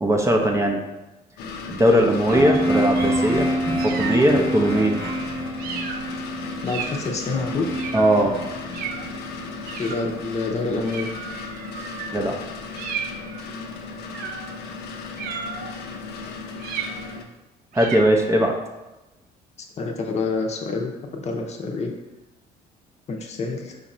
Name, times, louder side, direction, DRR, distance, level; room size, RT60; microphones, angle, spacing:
voice 1, 0.0-0.8 1.7-5.0 7.9-8.4 12.1-12.4 17.7-18.5, right 1 dB, 15° right, 2 dB, 0.5 m, -19 dB
sound 1, 1.4-17.2, left 4 dB, 75° left, 0.6 m, -36 dB
sound 2, 2.3-10.1, equal, 15° left, 1.1 m, -27 dB
sound 3, 2.3-3.3 3.8-4.3 5.0-5.2 5.6-6.1 6.6-7.1 7.7-8.2 8.7-9.1 9.7-10.2 10.8-12.2 12.7-13.5 14.1-14.6 15.2-15.8 16.6-17.2 17.7-18.2, right 6 dB, 60° right, 0.5 m, -34 dB
voice 2, 6.6-7.7 9.8-11.2 19.8-21.9 23.1-23.8, left 3 dB, 40° left, 3 dB, 0.7 m, -27 dB
5.0 x 2.5 x 4.2 m, 1.0 s
cardioid pair, 110°, 17 cm